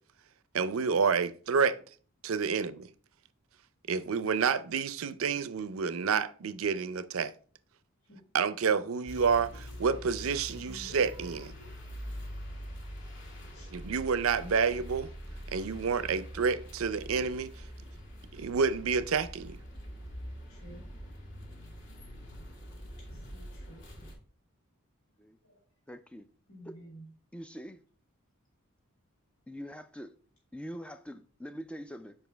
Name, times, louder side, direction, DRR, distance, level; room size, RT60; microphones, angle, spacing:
voice 1, 0.5-1.8 2.2-2.9 3.9-7.3 8.3-9.5 9.8-11.5 13.7-15.1 15.5-17.5 18.3-19.6, right 5 dB, 70° right, 0.5 m, -29 dB
sound 1, 9.1-24.2, equal, 55° left, 1.7 m, -44 dB
voice 2, 10.4-11.8 13.4-13.7 14.4-14.5 20.5-20.9 23.0-23.8 25.4-25.6 26.5-27.1, equal, 75° left, 2.2 m, -52 dB
voice 3, 25.9-26.3 26.6-26.8 27.3-27.8 29.5-30.1 30.5-32.2, equal, 5° left, 0.3 m, -43 dB
7.3 x 5.0 x 3.3 m
head